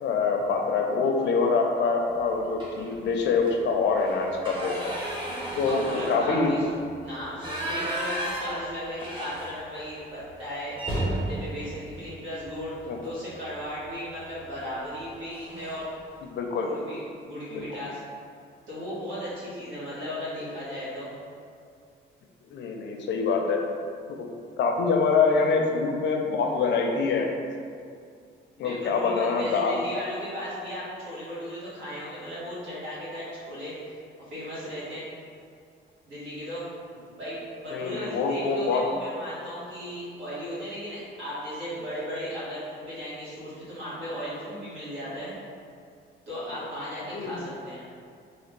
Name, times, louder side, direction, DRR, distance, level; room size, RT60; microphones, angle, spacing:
voice 1, 0.0-5.0 5.6-6.5 12.9-13.0 16.3-16.7 17.5-17.8 22.5-23.6 24.1-24.3 24.6-27.3 28.6-29.8 37.7-38.9 47.1-47.4, left 4 dB, 65° left, 2 dB, 0.5 m, -25 dB
sound 1, 2.6-3.0 3.4-3.5 3.9-9.9 10.2-10.3 10.7-12.9 14.2-14.5 14.9-15.0 15.3-15.9, right 1 dB, 25° right, 0.9 m, -34 dB
voice 2, 5.6-6.7 7.0-12.7 13.0-15.9 16.6-18.0 18.7-21.1 28.6-35.0 36.0-36.7 37.2-45.3 46.3-47.8, equal, 85° right, -9 dB, 1.3 m, -36 dB
3.2 x 2.3 x 3.1 m, 2.3 s
cardioid pair, 90°, 20 cm